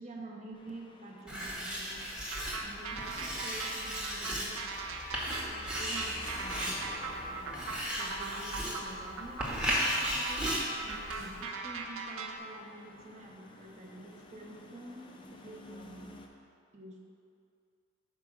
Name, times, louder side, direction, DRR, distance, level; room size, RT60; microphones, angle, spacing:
voice 1, 0.0-2.0 2.6-4.6 5.5-7.6 8.0-16.1 16.7-17.1, right 1 dB, 35° right, -1 dB, 0.7 m, -48 dB
sound 1, 0.5-16.3, left 2 dB, 20° left, 0.4 m, -51 dB
Writing, 1.3-11.4, equal, 5° right, 0.8 m, -36 dB
sound 2, 2.3-12.4, right 4 dB, 70° right, 0.6 m, -40 dB
4.9 x 4.8 x 6.2 m, 2.5 s
head